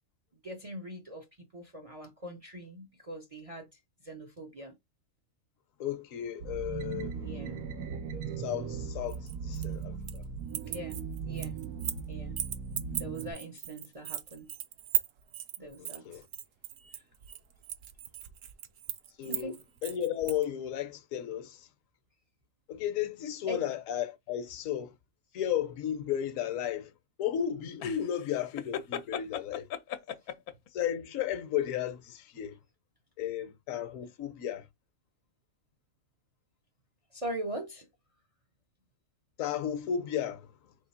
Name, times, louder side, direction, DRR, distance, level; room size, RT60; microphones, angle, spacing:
voice 1, 0.4-1.3 1.5-3.7 4.0-4.7 7.2-7.7 10.6-11.6 12.1-12.4 12.9-14.5 15.6-16.0 16.9-17.0 19.2-19.6 23.5-23.6 37.1-37.9, right 1 dB, 50° right, 0.4 m, -41 dB
voice 2, 5.8-7.5 8.4-10.2 15.8-16.3 19.2-21.7 22.7-24.9 25.3-26.9 27.2-29.7 30.7-32.6 33.2-34.7 39.4-40.5, left 10 dB, 70° left, 1.1 m, -34 dB
sound 1, 6.4-13.3, right 6 dB, 90° right, 1.3 m, -38 dB
sound 2, 9.1-10.2 10.5-12.1 12.4-20.4, right 12 dB, 65° right, 0.9 m, -37 dB
sound 3, 27.8-30.7, left 9 dB, 90° left, 1.1 m, -37 dB
3.7 x 3.1 x 4.2 m
omnidirectional pair, 1.5 m